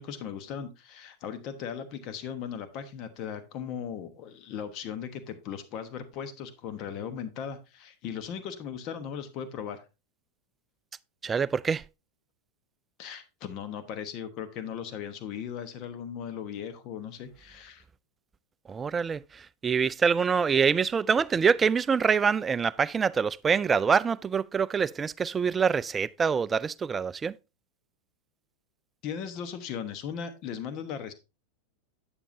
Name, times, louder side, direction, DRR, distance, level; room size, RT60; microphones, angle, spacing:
voice 1, 0.0-9.8 13.0-17.8 29.0-31.1, left 8 dB, 45° left, 1.2 m, -38 dB
voice 2, 11.2-11.8 18.7-27.4, right 6 dB, 20° right, 0.3 m, -25 dB
8.7 x 7.1 x 2.7 m
hypercardioid pair, 95°, 0 cm